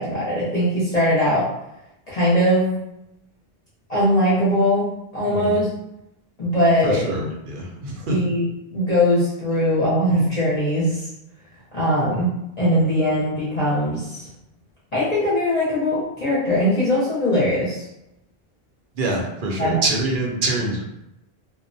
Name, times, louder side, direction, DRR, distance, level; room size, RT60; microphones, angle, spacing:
voice 1, 0.0-1.5 2.1-2.7 3.9-5.7 6.4-7.0 8.1-8.4 8.7-11.1 11.7-14.3 14.9-17.8 19.6-19.8, equal, 45° left, -8 dB, 0.7 m, -20 dB
voice 2, 6.8-8.1 19.0-20.8, right 2 dB, 60° right, -1 dB, 0.7 m, -25 dB
2.3 x 2.1 x 2.6 m, 0.87 s
omnidirectional pair, 1.0 m